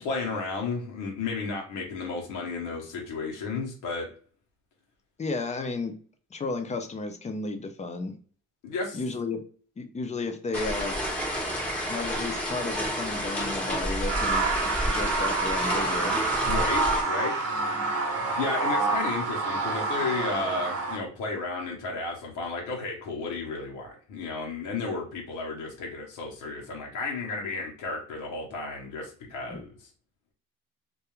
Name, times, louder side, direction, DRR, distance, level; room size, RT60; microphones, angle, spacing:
voice 1, 0.0-4.1 8.6-9.0 16.4-17.3 18.2-29.7, left 4 dB, 90° left, 0 dB, 0.8 m, -33 dB
voice 2, 5.2-5.9 6.3-8.1 8.9-9.4 9.8-11.0 11.9-16.2 29.5-29.6, left 3 dB, 25° left, 7 dB, 0.5 m, -33 dB
sound 1, 10.5-17.0, equal, 5° left, 0.8 m, -30 dB
sound 2, 14.1-21.0, right 3 dB, 55° right, 0.8 m, -28 dB
2.3 x 2.2 x 3.0 m, 0.44 s
cardioid pair, 90°, 30 cm